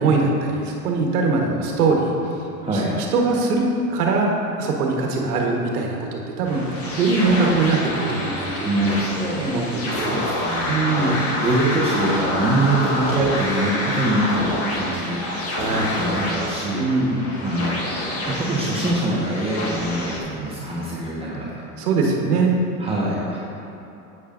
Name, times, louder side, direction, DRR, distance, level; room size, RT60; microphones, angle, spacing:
voice 1, 0.0-2.1 2.6-4.3 4.6-9.0 9.2-10.2 10.7-11.2 15.5-16.0 16.8-17.3 21.8-22.5, right 3 dB, 75° right, 0 dB, 1.5 m, -22 dB
voice 2, 2.6-2.9 8.6-9.5 9.8-15.3 15.6-16.8 17.4-17.8 18.3-21.5 22.8-23.4, right 1 dB, 10° right, -7 dB, 1.3 m, -24 dB
sound 1, 6.4-20.2, left 1 dB, 30° left, 1.5 m, -27 dB
10.0 x 8.5 x 2.6 m, 2.9 s
hypercardioid pair, 95°, 45 cm